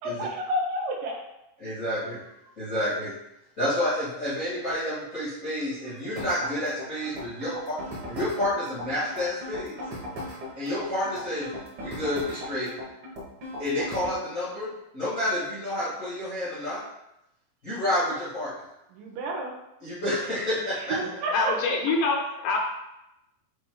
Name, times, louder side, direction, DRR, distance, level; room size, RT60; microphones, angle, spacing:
voice 1, 0.0-1.2 18.9-19.5 20.8-21.6, right 1 dB, 75° right, 0 dB, 2.5 m, -30 dB
voice 2, 1.6-2.2 2.6-3.1 3.6-7.8 8.0-9.8 10.5-11.5 11.8-12.7 13.6-16.8 17.6-18.5 19.8-21.0, left 1 dB, 40° left, -9 dB, 1.1 m, -29 dB
sound 1, 6.2-14.2, left 1 dB, 50° right, 1.9 m, -37 dB
voice 3, 21.3-22.6, left 3 dB, 75° left, 0 dB, 2.3 m, -25 dB
7.9 x 2.9 x 4.6 m, 0.87 s
omnidirectional pair, 4.2 m